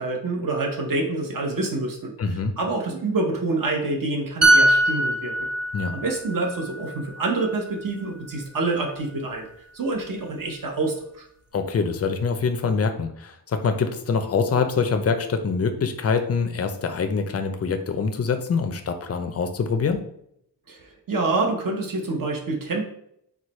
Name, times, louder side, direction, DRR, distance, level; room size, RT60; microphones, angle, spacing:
voice 1, 0.0-2.1 2.6-5.3 5.9-9.5 9.7-11.2 20.7-22.8, right 3 dB, 55° right, 1 dB, 0.9 m, -27 dB
voice 2, 2.2-2.5 5.7-5.9 11.5-20.1, left 5 dB, 40° left, 7 dB, 0.5 m, -24 dB
sound 1, 4.4-8.0 8.3-8.6, right 1 dB, 40° right, 0.6 m, -22 dB
4.7 x 2.2 x 4.1 m, 0.73 s
wide cardioid pair, 155°, 40 cm